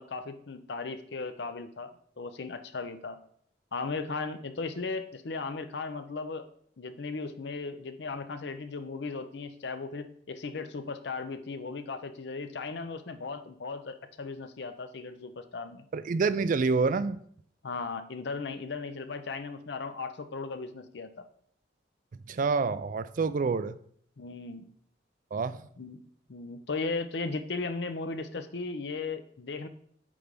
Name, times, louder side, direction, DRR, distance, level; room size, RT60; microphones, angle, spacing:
voice 1, 0.0-1.9 2.2-3.2 3.7-6.5 6.8-15.8 17.6-21.3 24.2-24.7 25.8-26.0 26.3-29.7, left 4 dB, 65° left, 10 dB, 0.6 m, -36 dB
voice 2, 15.9-17.2 22.3-23.8 25.3-25.6, right 4 dB, 45° right, 14 dB, 0.4 m, -27 dB
8.6 x 3.4 x 5.2 m, 0.63 s
head